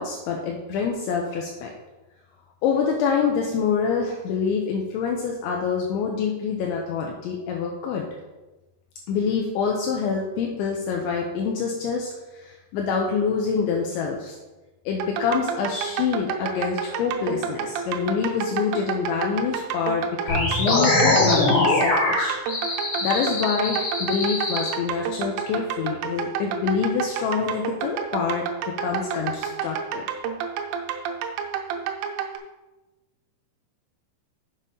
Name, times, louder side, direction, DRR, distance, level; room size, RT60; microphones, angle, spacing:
voice 1, 0.0-1.7 2.6-8.1 9.1-12.1 12.4-14.4 14.9-22.7 23.0-28.4 28.8-30.1, left 6 dB, 75° left, 0 dB, 3.0 m, -26 dB
sound 1, 15.0-32.4, right 7 dB, 80° right, 3.3 m, -30 dB
sound 2, 20.3-24.7, left 2 dB, 60° left, 1.4 m, -22 dB
7.5 x 6.7 x 5.4 m, 1.1 s
omnidirectional pair, 5.7 m